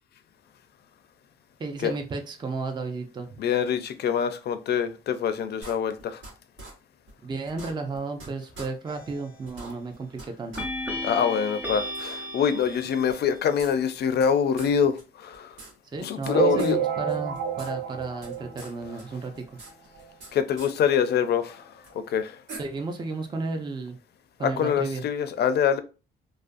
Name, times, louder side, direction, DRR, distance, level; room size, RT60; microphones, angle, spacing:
voice 1, 1.6-3.4 7.2-10.6 15.8-19.4 22.6-24.0 24.4-25.0, right 3 dB, 20° right, 0.4 m, -33 dB
voice 2, 3.4-6.2 11.0-15.5 16.0-16.8 20.3-21.6 21.9-22.4 24.4-25.8, left 7 dB, 55° left, 0.4 m, -25 dB
sound 1, 5.6-6.3 6.6-6.7 7.1-7.2 7.5-8.3 8.5-8.7 9.1-9.2 9.5-10.3 10.5-10.6 11.0-11.1 11.9-12.0 13.1-14.3 14.6-14.7 15.0-15.1 15.3-16.3 16.6-16.7 17.1-17.7 18.0-18.7 19.0-20.3 20.6-20.7 21.8-21.9 22.5-22.6, right 2 dB, 85° right, 1.1 m, -43 dB
sound 2, 8.9-9.3 10.6-13.3, left 1 dB, 5° right, 0.9 m, -35 dB
sound 3, 16.3-19.2 19.7-19.8 19.9-20.1 20.4-20.5 21.3-21.4 21.9-22.0, right 8 dB, 65° right, 1.2 m, -29 dB
2.4 x 2.2 x 2.4 m
cardioid pair, 90°, 20 cm